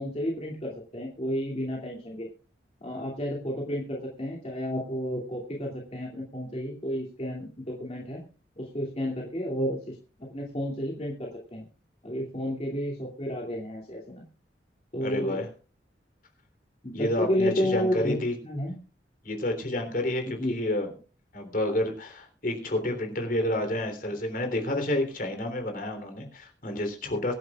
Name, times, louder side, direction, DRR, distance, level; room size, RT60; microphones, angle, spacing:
voice 1, 0.0-2.3 2.8-8.2 8.6-10.0 10.3-11.6 12.0-14.2 14.9-15.4 16.8-18.2 18.4-18.7 20.4-20.6, equal, 35° left, -2 dB, 2.5 m, -31 dB
voice 2, 15.0-15.5 16.9-18.3 19.2-20.9 21.3-27.3, left 1 dB, 50° left, 6 dB, 3.4 m, -29 dB
23.5 x 10.5 x 2.4 m, 0.35 s
head